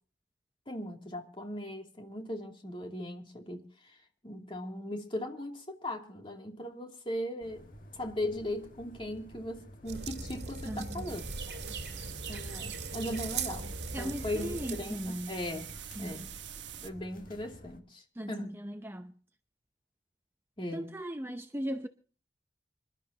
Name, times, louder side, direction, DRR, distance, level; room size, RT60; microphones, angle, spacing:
voice 1, 0.7-3.9 4.2-7.7 7.9-11.2 11.5-11.7 12.3-13.7 14.0-15.7 16.0-16.3 16.8-18.6 20.6-20.9, left 1 dB, 30° left, 2.8 m, -38 dB
sound 1, 7.4-17.8, left 1 dB, 50° left, 1.8 m, -53 dB
sound 2, 9.9-14.8, right 4 dB, 65° right, 1.9 m, -39 dB
voice 2, 10.7-11.1 12.3-12.6 13.9-15.3 16.0-16.3 18.2-19.1 20.7-21.9, equal, 15° right, 0.6 m, -38 dB
sound 3, 11.1-16.9, right 8 dB, 85° right, 1.2 m, -45 dB
26.5 x 12.5 x 2.9 m
head